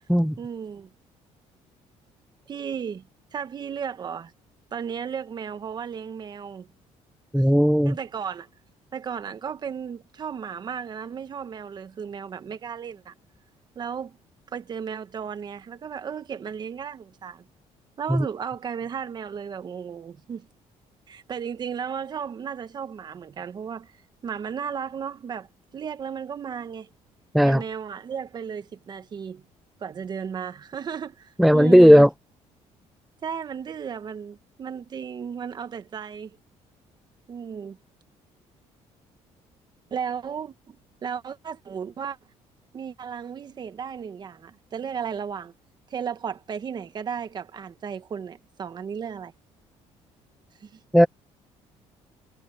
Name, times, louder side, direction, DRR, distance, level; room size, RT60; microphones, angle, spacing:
voice 1, 0.4-0.9 2.5-3.0 3.3-4.3 4.7-6.7 7.4-7.5 7.8-8.5 8.9-13.1 13.7-14.2 14.5-17.4 18.0-20.5 21.1-23.9 24.2-25.5 25.7-26.9 27.4-29.4 29.8-32.0 33.2-36.4 37.3-37.8 39.9-42.2 42.7-45.5 45.9-49.3 50.6-50.8, right 7 dB, 35° right, 1.3 m, -34 dB
voice 2, 7.3-8.0 18.1-18.3 27.3-27.6 31.4-32.1 50.9-51.1, equal, ahead, 0.5 m, -15 dB
cardioid pair, 145°, 13 cm